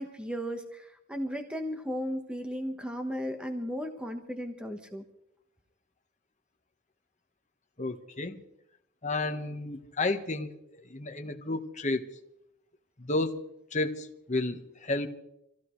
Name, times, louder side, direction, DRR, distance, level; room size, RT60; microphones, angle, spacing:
voice 1, 0.0-5.0, equal, 5° right, 4 dB, 1.2 m, -35 dB
voice 2, 7.8-8.4 9.0-10.5 10.8-12.0 13.0-13.4 13.7-15.1, left 2 dB, 35° left, 5 dB, 1.3 m, -31 dB
26.0 x 16.0 x 3.2 m, 0.80 s
head